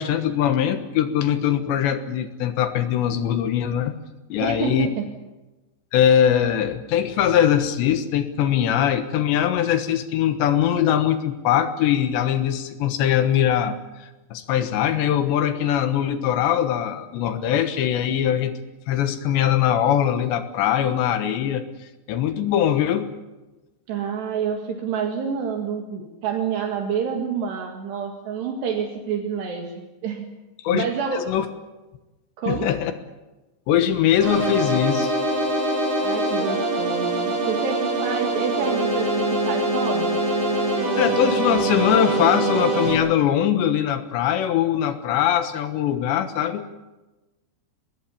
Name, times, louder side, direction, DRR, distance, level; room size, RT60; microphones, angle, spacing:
voice 1, 0.0-3.9 4.3-4.9 5.9-18.5 18.9-23.1 30.6-30.8 31.1-31.5 32.5-32.9 33.7-35.2 41.0-46.7, left 10 dB, 75° left, 9 dB, 3.4 m, -21 dB
voice 2, 4.4-5.0 23.9-30.3 30.7-31.3 32.4-32.7 36.0-40.2, right 6 dB, 70° right, 3 dB, 3.9 m, -28 dB
sound 1, 34.2-42.9, right 2 dB, 50° right, 7.4 m, -23 dB
23.5 x 20.0 x 8.4 m, 1.1 s
omnidirectional pair, 5.3 m